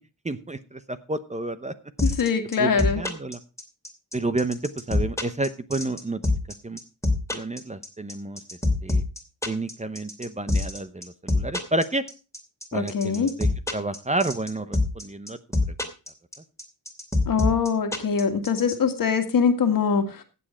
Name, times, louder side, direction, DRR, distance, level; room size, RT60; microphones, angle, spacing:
voice 1, 0.2-1.7 2.0-2.1 2.6-3.4 4.1-6.2 6.6-6.8 7.3-8.4 8.8-9.0 9.5-12.0 12.7-15.4, right 2 dB, 20° right, 12 dB, 0.9 m, -30 dB
voice 2, 2.0-3.0 12.7-13.3 17.3-20.2, left 6 dB, 60° left, 7 dB, 2.0 m, -23 dB
sound 1, 2.0-18.8, left 2 dB, 10° left, 2.6 m, -24 dB
15.5 x 7.6 x 4.4 m, 0.32 s
cardioid pair, 90°, 37 cm